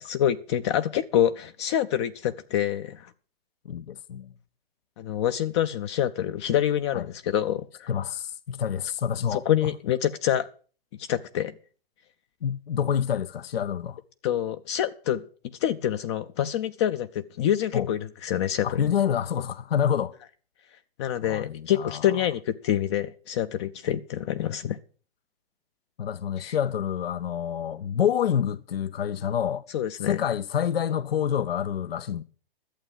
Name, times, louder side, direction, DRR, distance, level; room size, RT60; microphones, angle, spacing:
voice 1, 0.0-3.1 5.0-7.9 9.3-10.5 11.0-11.5 14.2-15.2 15.6-18.9 21.0-24.8 26.4-26.6 29.7-30.2, left 10 dB, 30° left, 0.5 m, -26 dB
voice 2, 3.7-4.3 6.9-7.1 7.9-9.7 12.4-14.0 17.7-17.9 18.6-20.1 21.3-22.2 26.0-29.7 30.0-32.2, left 9 dB, 70° left, 0.7 m, -27 dB
11.5 x 7.9 x 7.3 m
hypercardioid pair, 125°, 30 cm